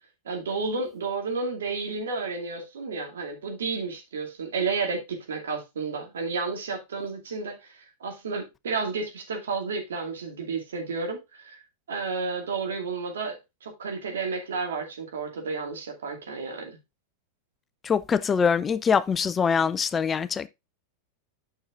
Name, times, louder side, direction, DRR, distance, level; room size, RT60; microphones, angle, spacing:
voice 1, 0.3-11.6 11.9-16.8, right 4 dB, 75° right, 2.4 m, -31 dB
voice 2, 17.8-20.5, left 6 dB, 25° left, 0.5 m, -23 dB
9.7 x 6.3 x 2.4 m
hypercardioid pair, 95°, 0 cm